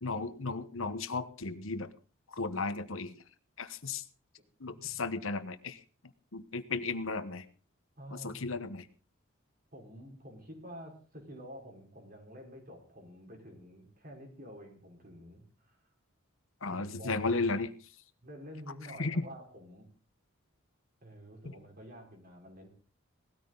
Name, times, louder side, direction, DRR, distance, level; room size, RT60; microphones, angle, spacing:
voice 1, 0.0-1.9 2.3-3.1 3.6-4.0 4.6-5.8 6.3-7.4 8.2-8.8 16.6-17.7 19.0-19.2, left 3 dB, 70° left, 11 dB, 1.2 m, -34 dB
voice 2, 8.0-8.4 9.7-15.8 16.7-17.2 18.2-19.9 21.0-22.7, equal, 40° right, 1 dB, 4.8 m, -49 dB
19.0 x 14.0 x 4.0 m, 0.37 s
head